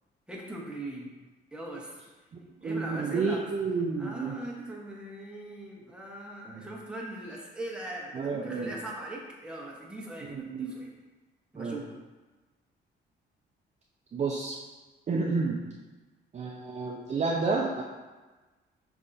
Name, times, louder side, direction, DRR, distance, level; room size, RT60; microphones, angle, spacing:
voice 1, 0.3-1.1 1.5-2.0 2.6-3.5 4.0-10.9 11.5-12.0, right 1 dB, 5° right, -3 dB, 1.0 m, -40 dB
voice 2, 2.3-4.3 6.5-6.6 8.1-8.7 10.2-10.7 11.6-11.8 14.1-14.6 15.1-15.6 16.3-17.8, right 4 dB, 35° right, -2 dB, 0.5 m, -30 dB
5.4 x 3.4 x 2.6 m, 1.2 s
cardioid pair, 90°, 20 cm